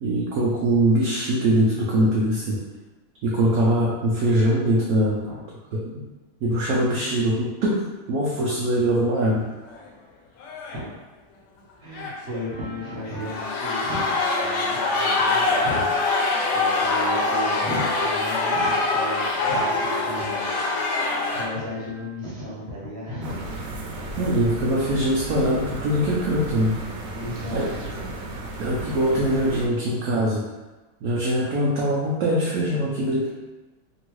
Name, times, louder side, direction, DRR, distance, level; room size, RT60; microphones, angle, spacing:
voice 1, 0.0-2.6 3.2-5.3 5.7-6.0 6.4-9.4 24.2-26.8 27.5-27.7 28.6-30.4 31.0-33.3, right 1 dB, 70° right, -5 dB, 0.9 m, -22 dB
sound 1, 9.2-9.4 9.7-9.8 10.4-10.8 11.9-12.5 13.1-21.5, left 3 dB, 80° left, 1.2 m, -24 dB
voice 2, 11.8-15.8 16.5-23.3 23.9-24.1 27.1-28.5, equal, 45° right, -7 dB, 1.1 m, -35 dB
sound 2, 12.5-22.1, right 2 dB, 45° left, 1.2 m, -39 dB
sound 3, 23.2-29.7, right 2 dB, 90° right, 1.2 m, -34 dB
3.0 x 2.8 x 3.0 m, 1.1 s
omnidirectional pair, 1.8 m